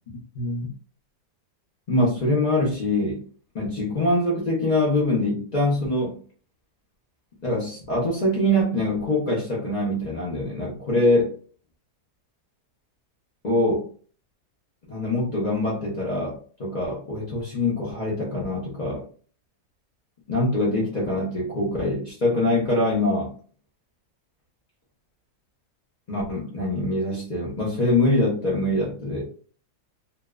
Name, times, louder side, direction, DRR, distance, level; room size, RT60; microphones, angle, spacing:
voice 1, 0.3-0.7 1.9-3.2 3.5-6.2 7.4-11.3 13.4-13.9 14.9-19.0 20.3-23.3 26.1-29.3, left 1 dB, 80° left, -5 dB, 0.3 m, -24 dB
2.7 x 2.1 x 2.2 m, 0.42 s
omnidirectional pair, 1.7 m